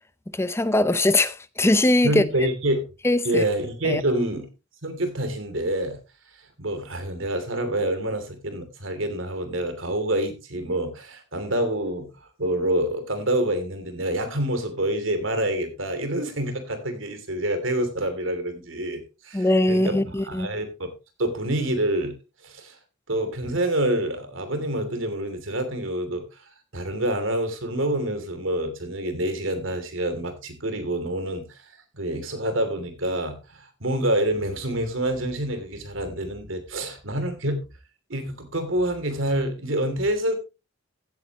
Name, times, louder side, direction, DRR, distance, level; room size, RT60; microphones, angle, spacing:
voice 1, 0.3-2.2 3.0-3.4 3.8-4.0 19.3-20.5, left 1 dB, 15° left, 0.6 m, -21 dB
voice 2, 2.0-2.8 3.2-4.5 4.8-6.0 6.6-12.1 12.4-20.9 21.2-22.2 22.4-22.8 23.1-26.2 26.7-37.6 38.1-40.3, right 1 dB, 80° right, 2.9 m, -27 dB
15.5 x 8.7 x 3.0 m
head